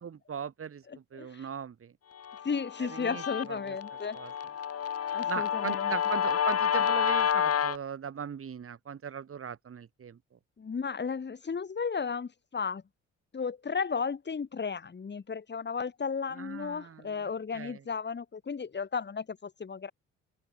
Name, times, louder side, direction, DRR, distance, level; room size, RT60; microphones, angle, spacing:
voice 1, 0.0-1.9 2.8-3.2 3.5-3.8 4.1-4.3 5.3-10.2 16.3-17.8, right 7 dB, 45° right, 3.6 m, -39 dB
voice 2, 0.9-1.5 2.4-4.2 5.1-5.9 10.6-12.8 13.3-19.9, left 5 dB, 35° left, 3.8 m, -34 dB
Guitar, 2.2-7.8, left 8 dB, 50° left, 2.5 m, -29 dB
open air
cardioid pair, 90°, 30 cm